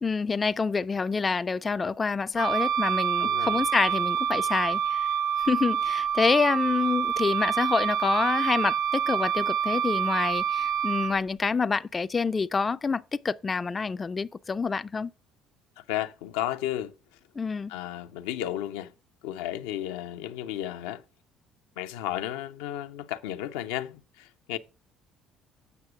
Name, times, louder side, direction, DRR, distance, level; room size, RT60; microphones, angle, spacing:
voice 1, 0.0-5.1 5.4-15.1 17.4-17.7, left 4 dB, 30° left, 0.3 m, -27 dB
Wind instrument woodwind instrument, 2.4-11.2, right 8 dB, 70° right, 0.4 m, -27 dB
voice 2, 3.2-3.6 15.8-16.9 17.7-18.9 19.2-21.0 21.8-24.6, left 12 dB, 85° left, 0.5 m, -33 dB
8.1 x 6.1 x 4.7 m
supercardioid pair, 70°, 0 cm